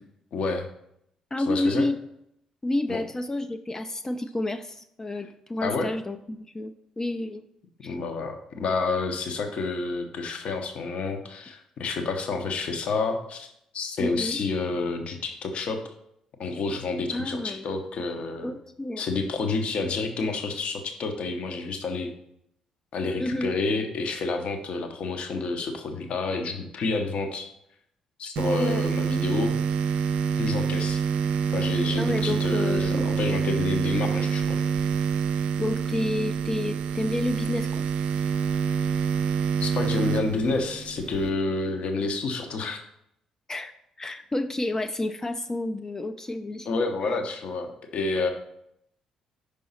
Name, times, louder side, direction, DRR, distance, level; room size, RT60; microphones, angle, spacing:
voice 1, 0.3-0.7 1.5-1.9 2.9-3.0 5.6-5.9 7.8-13.5 13.7-15.9 16.4-18.5 19.0-22.1 22.9-27.5 28.2-29.5 30.4-31.0 31.5-34.6 39.6-42.8 46.7-48.3, left 3 dB, 50° left, 6 dB, 0.9 m, -29 dB
voice 2, 1.3-2.0 2.6-7.4 7.8-8.0 14.0-14.4 17.1-17.6 18.4-19.0 23.2-23.5 28.5-28.9 32.0-33.2 35.6-37.9 43.5-43.7 44.0-46.7, left 1 dB, 20° left, 8 dB, 0.4 m, -30 dB
sound 1, 28.4-41.3, right 6 dB, 60° right, 0.4 m, -27 dB
5.4 x 5.0 x 4.1 m, 0.75 s
figure-of-eight pair, 45°, 2 cm